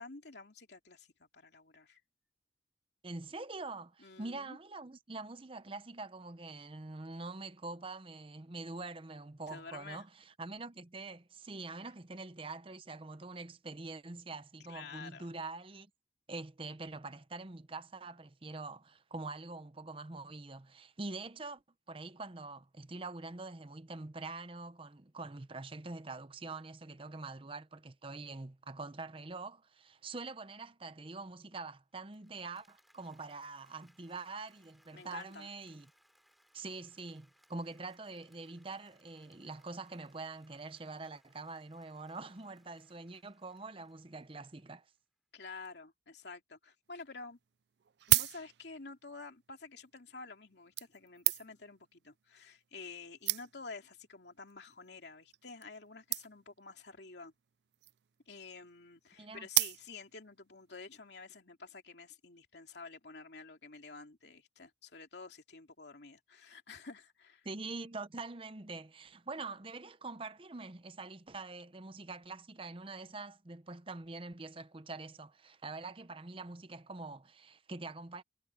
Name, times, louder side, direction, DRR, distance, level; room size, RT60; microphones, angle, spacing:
voice 1, 0.0-2.0 4.0-4.6 9.5-10.0 14.7-15.3 34.9-35.5 45.3-47.4 48.1-57.3 58.3-67.5, left 4 dB, 70° left, 2.7 m, -50 dB
voice 2, 3.0-15.9 16.3-21.6 21.9-35.9 36.5-44.9 59.2-59.5 67.4-78.2, right 3 dB, 30° right, 0.8 m, -45 dB
Applause, 32.1-45.0, equal, ahead, 4.5 m, -71 dB
sound 1, 47.0-47.1 47.8-48.9 49.8-50.0 50.8-51.7 52.6-52.7 52.9-53.0 53.2-53.8 54.5-54.7 55.0-55.1 55.3-55.4 55.6-55.7 56.1-56.6 57.6-58.1 59.5-60.2 60.7-60.8, right 17 dB, 70° right, 0.4 m, -33 dB
head